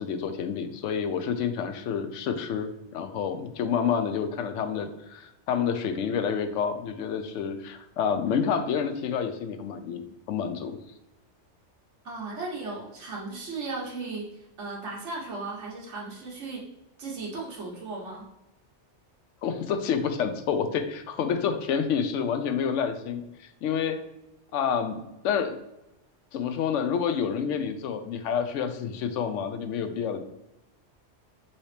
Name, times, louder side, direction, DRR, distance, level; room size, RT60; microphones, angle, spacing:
voice 1, 0.0-10.8 19.4-24.0 24.5-25.6 26.3-30.2, left 7 dB, 85° left, 8 dB, 0.9 m, -28 dB
voice 2, 12.0-16.6 17.0-18.3, right 3 dB, 80° right, -3 dB, 1.6 m, -36 dB
5.5 x 2.9 x 3.3 m, 0.92 s
omnidirectional pair, 1.2 m